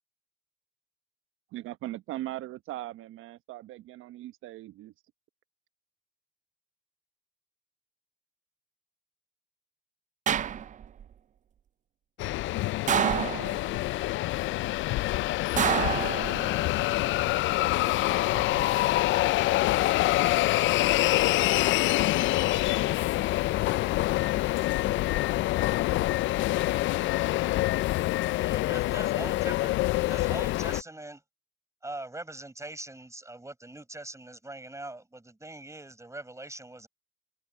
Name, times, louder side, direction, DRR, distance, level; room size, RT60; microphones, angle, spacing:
voice 1, 1.5-4.9, right 15 dB, 75° right, 1.1 m, -39 dB
sound 1, 10.3-11.0 12.9-13.8 15.6-16.7 18.1-18.6, right 9 dB, 35° right, 0.4 m, -28 dB
sound 2, 12.2-30.8, left 17 dB, 65° left, 0.4 m, -26 dB
voice 2, 27.6-31.2 31.8-36.9, right 2 dB, 15° right, 5.7 m, -42 dB
hypercardioid pair, 60°, 21 cm